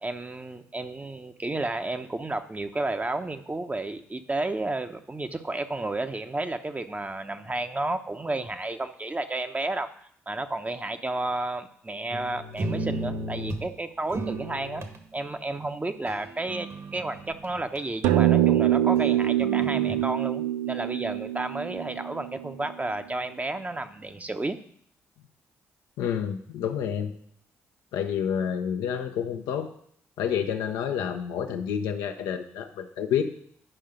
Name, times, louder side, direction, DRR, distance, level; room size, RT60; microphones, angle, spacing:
voice 1, 0.0-9.9 10.3-14.9 15.1-24.6, right 2 dB, 20° right, 8 dB, 0.9 m, -32 dB
sound 1, 12.1-13.7 14.1-15.0 16.1-17.8 19.0-20.0, right 2 dB, 45° right, 1.5 m, -34 dB
sound 2, 18.0-22.7, right 12 dB, 75° right, 0.3 m, -24 dB
voice 2, 26.0-27.1 27.9-29.7 30.2-33.2, left 8 dB, 75° left, 5 dB, 0.8 m, -29 dB
10.0 x 5.5 x 5.2 m, 0.65 s
hypercardioid pair, 40°, 7 cm